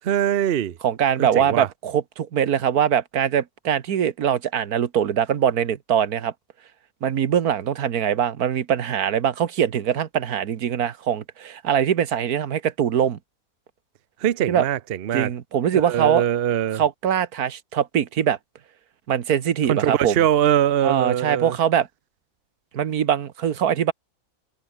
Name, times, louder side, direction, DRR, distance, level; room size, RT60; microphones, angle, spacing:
voice 1, 0.0-0.8 1.2-1.7 14.2-15.3 15.7-16.8 19.7-21.6, right 10 dB, 50° right, 0.8 m, -22 dB
voice 2, 0.8-6.3 7.0-13.2 14.5-14.6 15.1-16.2 16.7-18.4 19.1-20.2 20.8-21.9 22.7-23.9, right 9 dB, 80° right, 1.6 m, -22 dB
omnidirectional pair, 1.6 m